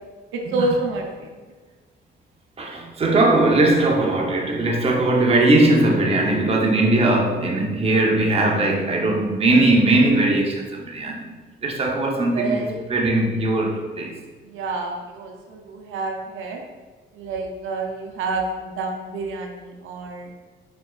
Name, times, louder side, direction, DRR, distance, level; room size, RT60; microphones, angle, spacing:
voice 1, 0.3-1.3 12.3-13.7 14.4-16.6 17.1-20.3, right 3 dB, 85° right, 1 dB, 0.6 m, -29 dB
voice 2, 2.6-11.3 11.6-14.1, right 2 dB, 30° right, 0 dB, 0.7 m, -19 dB
4.3 x 4.2 x 2.3 m, 1.4 s
cardioid pair, 90°, 20 cm